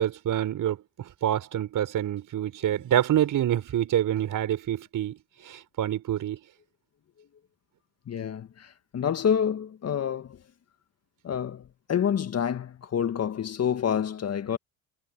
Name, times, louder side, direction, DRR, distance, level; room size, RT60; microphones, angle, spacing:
voice 1, 0.0-6.4, right 11 dB, 50° right, 4.6 m, -27 dB
voice 2, 8.1-10.4 11.2-14.6, left 8 dB, 40° left, 1.8 m, -28 dB
hypercardioid pair, 70°, 40 cm